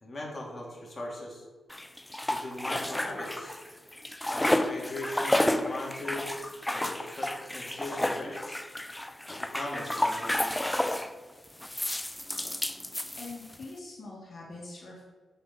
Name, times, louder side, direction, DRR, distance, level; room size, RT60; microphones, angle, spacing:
voice 1, 0.0-1.5 2.3-3.6 4.3-6.4 6.7-8.6 9.2-10.4, left 1 dB, 25° left, -2 dB, 2.5 m, -39 dB
sound 1, 1.7-3.7 3.9-11.1 11.6-13.6, left 1 dB, 10° left, 0.5 m, -31 dB
voice 2, 13.2-15.0, left 2 dB, 55° left, -3 dB, 2.0 m, -43 dB
12.5 x 5.5 x 4.1 m, 1.4 s
cardioid pair, 75°, 0 cm